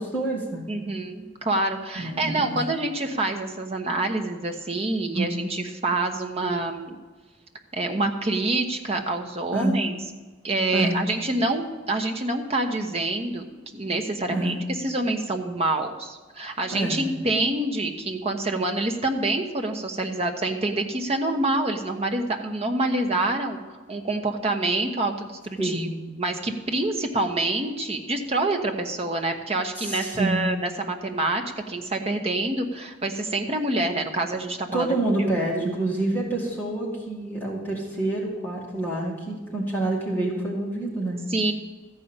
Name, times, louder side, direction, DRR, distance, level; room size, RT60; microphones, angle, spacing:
voice 1, 0.0-0.6 2.0-2.6 5.1-5.4 9.5-9.8 10.7-11.0 14.3-14.6 16.7-17.1 25.6-26.0 29.8-30.5 34.7-41.2, right 2 dB, 10° left, -4 dB, 2.1 m, -27 dB
voice 2, 0.7-7.0 7.7-10.0 10.4-13.5 13.7-35.7 41.3-41.5, right 2 dB, 30° right, 4 dB, 1.1 m, -27 dB
14.0 x 5.5 x 8.8 m, 1.3 s
head